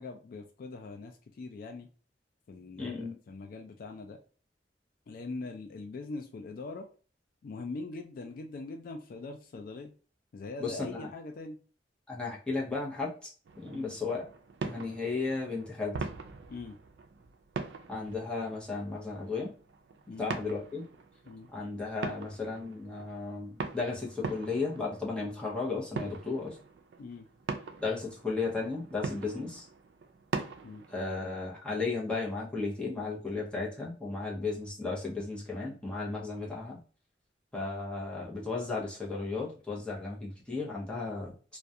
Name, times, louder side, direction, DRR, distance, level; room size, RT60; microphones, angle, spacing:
voice 1, 0.0-1.9 2.5-4.2 5.1-6.9 7.4-9.9 10.3-11.6 13.7-14.0 16.5-16.8 20.1-20.3 21.3-21.5 27.0-27.3 30.6-30.8, left 3 dB, 55° left, 5 dB, 0.3 m, -42 dB
voice 2, 2.8-3.2 10.6-11.1 12.1-13.3 13.6-14.3 14.6-16.0 17.9-19.5 20.2-20.8 21.5-26.6 27.8-29.7 30.9-36.8 37.5-41.3, left 3 dB, 5° left, -4 dB, 0.7 m, -34 dB
sound 1, 13.4-31.0, right 4 dB, 70° right, 0.4 m, -42 dB
2.3 x 2.2 x 2.6 m, 0.38 s
head